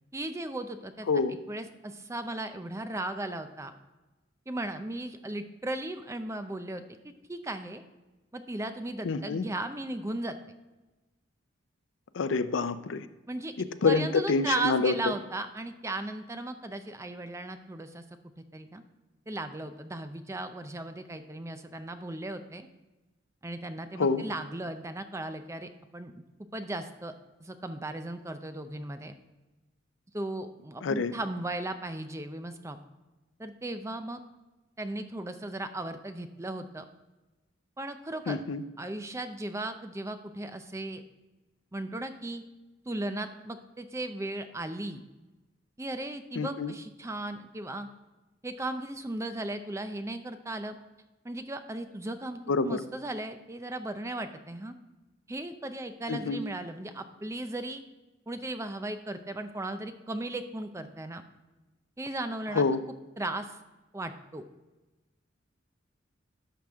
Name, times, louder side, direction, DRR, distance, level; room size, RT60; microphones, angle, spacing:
voice 1, 0.1-1.1 1.5-3.7 4.5-7.8 8.3-10.4 13.3-13.5 13.8-18.0 18.5-18.8 19.3-22.7 23.4-26.2 26.5-27.1 27.4-29.1 30.1-32.8 33.4-34.2 34.8-36.8 37.8-38.4 38.8-41.0 41.7-42.4 42.9-45.0 45.8-47.9 48.4-50.8 51.2-54.7 55.3-57.8 58.3-61.2 62.0-62.7 63.2-63.6 63.9-64.4, right 2 dB, 15° right, 9 dB, 0.5 m, -36 dB
voice 2, 9.0-9.4 12.1-13.1 13.6-14.9 24.0-24.3 30.8-31.1 38.3-38.6 46.4-46.7 52.5-52.8 56.1-56.4 62.5-62.8, left 4 dB, 90° left, 13 dB, 0.5 m, -27 dB
11.0 x 6.0 x 3.5 m, 1.1 s
head